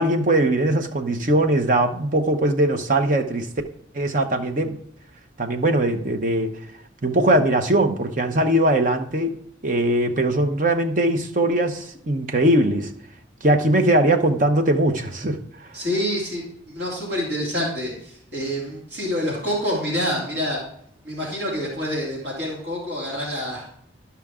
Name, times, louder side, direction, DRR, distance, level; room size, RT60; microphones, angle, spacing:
voice 1, 0.0-3.5 3.9-4.8 5.4-6.5 7.0-12.9 13.4-15.7, right 1 dB, 40° right, 6 dB, 0.7 m, -20 dB
voice 2, 15.7-20.6 21.0-23.7, equal, 60° right, -4 dB, 2.9 m, -27 dB
11.5 x 5.8 x 3.6 m, 0.68 s
head